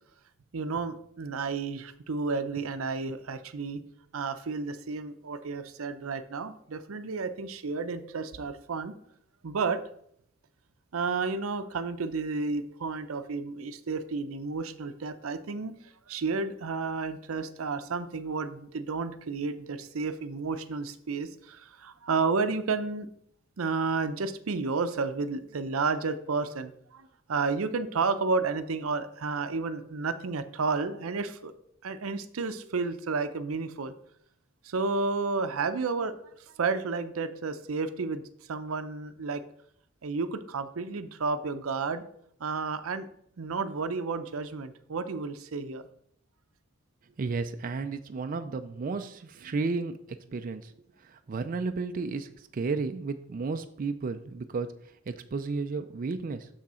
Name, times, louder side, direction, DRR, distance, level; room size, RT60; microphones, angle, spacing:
voice 1, 0.5-3.8 4.1-8.9 9.4-9.8 10.9-15.8 16.1-23.1 23.6-31.5 31.8-33.9 34.6-36.3 36.6-38.2 38.5-39.4 40.0-42.0 42.4-43.1 43.4-45.8, right 4 dB, 90° right, 11 dB, 0.6 m, -31 dB
voice 2, 47.2-50.0 50.3-50.7 51.1-54.7 55.1-56.5, right 4 dB, 40° right, 8 dB, 0.4 m, -33 dB
6.4 x 6.1 x 4.3 m, 0.69 s
head